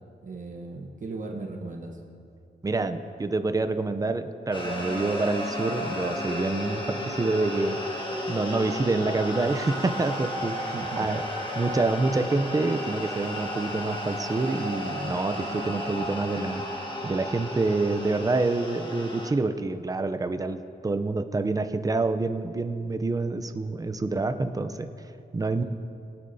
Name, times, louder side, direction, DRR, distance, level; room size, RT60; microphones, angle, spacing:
voice 1, 0.2-2.0 10.7-11.1 16.0-16.1 25.6-25.7, right 3 dB, 50° right, 0 dB, 1.1 m, -37 dB
voice 2, 2.6-7.8 8.3-11.2 11.6-16.6 17.0-24.9 25.3-25.6, right 3 dB, 20° right, 9 dB, 0.5 m, -27 dB
sound 1, 4.5-19.3, left 1 dB, 30° left, 1.5 m, -33 dB
22.0 x 9.5 x 2.7 m, 2.5 s
wide cardioid pair, 140°, 17 cm